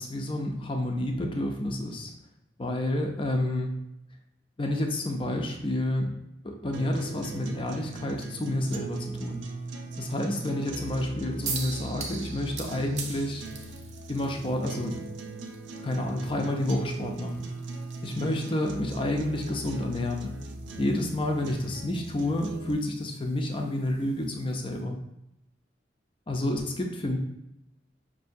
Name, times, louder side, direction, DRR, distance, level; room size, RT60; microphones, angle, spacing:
voice 1, 0.0-2.1 2.6-3.7 4.6-6.1 6.4-9.4 10.0-13.5 14.1-15.1 15.8-17.5 18.0-20.3 20.8-25.0 26.3-27.2, left 1 dB, 30° left, 3 dB, 0.5 m, -29 dB
sound 1, 6.7-22.7, right 3 dB, 90° right, 0.5 m, -39 dB
sound 2, 11.4-24.8, right 5 dB, 40° right, 0.6 m, -44 dB
5.5 x 2.7 x 2.6 m, 0.84 s
head